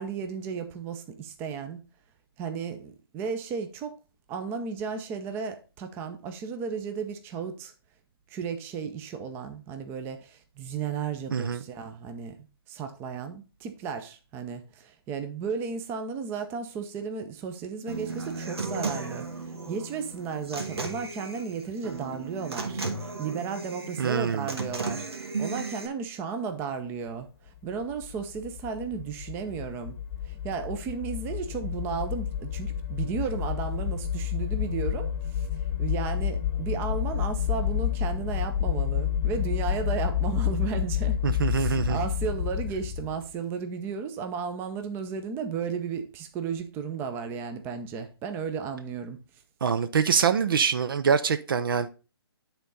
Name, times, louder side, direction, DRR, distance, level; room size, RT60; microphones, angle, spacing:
voice 1, 0.0-1.8 2.4-3.9 4.3-7.7 8.3-12.3 12.7-30.0 30.2-35.5 35.8-41.2 41.5-49.2, right 6 dB, 15° right, 0.6 m, -34 dB
voice 2, 11.3-11.6 24.0-24.5 41.2-42.0 49.6-51.9, right 6 dB, 55° right, 0.6 m, -25 dB
Human voice / Acoustic guitar, 17.9-25.9, right 3 dB, 75° right, 1.5 m, -35 dB
sound 1, 27.9-43.2, left 9 dB, 35° left, 0.9 m, -29 dB
9.0 x 3.9 x 4.0 m
figure-of-eight pair, 140°, 13 cm